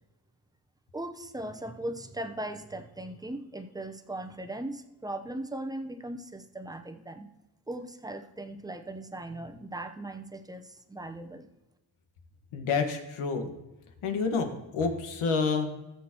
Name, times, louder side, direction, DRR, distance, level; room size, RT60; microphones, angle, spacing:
voice 1, 0.9-7.3 7.7-11.5, right 1 dB, 10° right, 7 dB, 0.8 m, -38 dB
voice 2, 12.5-13.5 14.0-15.7, left 4 dB, 90° left, 5 dB, 1.6 m, -28 dB
18.0 x 7.2 x 3.0 m, 1.0 s
cardioid pair, 110°, 48 cm